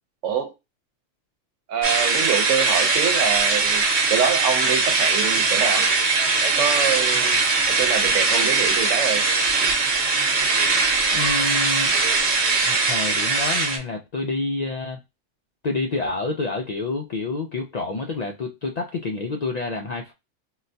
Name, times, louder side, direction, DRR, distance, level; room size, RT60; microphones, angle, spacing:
voice 1, 0.2-0.5 1.7-5.9 6.4-9.2, right 7 dB, 90° right, 1.0 m, -25 dB
sound 1, 1.8-13.8, right 4 dB, 65° right, 1.1 m, -21 dB
voice 2, 11.1-12.0 12.7-15.0 15.6-20.1, left 3 dB, 70° left, 0.3 m, -28 dB
3.8 x 2.2 x 2.6 m
omnidirectional pair, 1.2 m